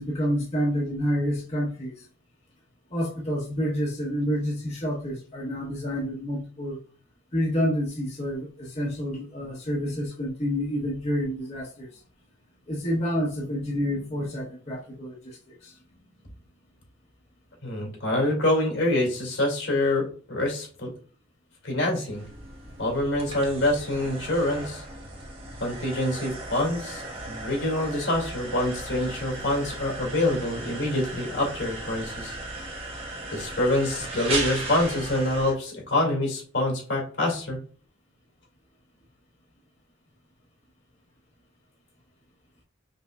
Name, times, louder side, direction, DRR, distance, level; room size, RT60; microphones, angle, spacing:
voice 1, 0.0-1.9 2.9-6.8 7.3-11.9 12.7-15.7, equal, 35° left, -4 dB, 1.0 m, -28 dB
voice 2, 17.6-20.9 21.6-22.2 22.8-24.8 25.6-32.3 33.3-37.6, left 1 dB, 75° left, 0 dB, 2.2 m, -26 dB
sound 1, 22.1-35.5, right 2 dB, 30° right, 1.1 m, -36 dB
5.4 x 3.4 x 2.3 m, 0.42 s
head